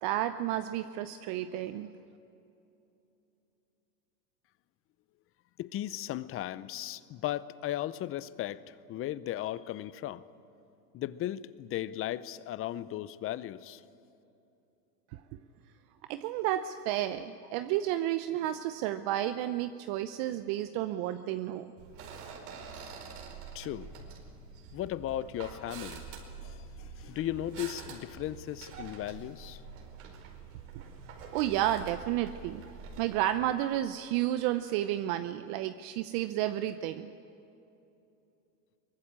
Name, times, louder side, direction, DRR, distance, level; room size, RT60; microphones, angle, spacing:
voice 1, 0.0-1.9 16.1-21.7 31.3-32.6 33.0-37.1, right 13 dB, 45° right, 11 dB, 0.9 m, -31 dB
voice 2, 5.6-10.2 10.9-13.8 23.5-23.9 24.7-26.0 26.4-29.6, left 13 dB, 30° left, 17 dB, 0.7 m, -36 dB
sound 1, 21.8-33.5, right 5 dB, 60° right, 5.0 m, -46 dB
23.5 x 19.5 x 8.8 m, 2.9 s
hypercardioid pair, 115°, 48 cm